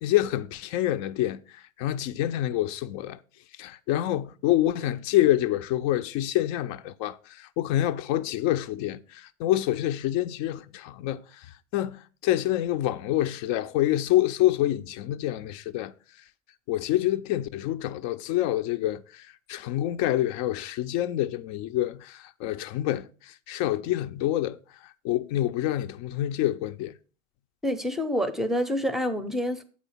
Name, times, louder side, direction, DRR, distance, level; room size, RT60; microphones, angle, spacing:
voice 1, 0.0-3.2 3.6-15.9 16.7-24.6 25.0-26.9, left 13 dB, 45° left, 0.5 m, -27 dB
voice 2, 27.6-29.6, equal, ahead, 0.7 m, -27 dB
8.2 x 4.3 x 5.6 m
hypercardioid pair, 95°, 42 cm